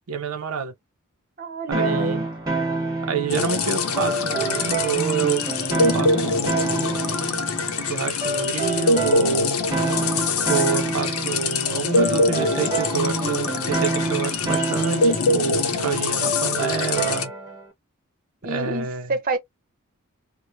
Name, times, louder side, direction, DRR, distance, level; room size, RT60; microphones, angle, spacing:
voice 1, 0.1-0.7 1.7-2.2 3.0-5.4 5.9-6.9 7.8-9.5 10.3-17.3 18.5-19.1, right 6 dB, 85° right, 0.5 m, -28 dB
voice 2, 1.4-2.3 18.4-19.4, right 2 dB, 40° right, 0.8 m, -27 dB
sound 1, 1.7-17.6, right 3 dB, 15° right, 1.1 m, -28 dB
sound 2, 3.3-17.2, left 3 dB, 85° left, 0.7 m, -24 dB
3.0 x 2.1 x 2.4 m
head